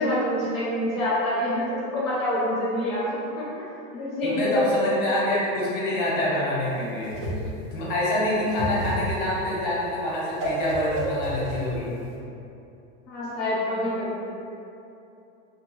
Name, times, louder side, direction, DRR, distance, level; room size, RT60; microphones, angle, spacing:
voice 1, 0.0-3.0 3.4-3.7 3.9-4.8 13.1-14.4, left 1 dB, 15° left, -16 dB, 0.3 m, -26 dB
voice 2, 4.2-7.2 7.7-11.9, left 1 dB, 45° left, -6 dB, 0.8 m, -26 dB
Whoosh swoosh swish, 6.6-12.1, right 1 dB, 75° right, 1.0 m, -31 dB
2.6 x 2.2 x 2.9 m, 2.7 s
supercardioid pair, 170°, 40 cm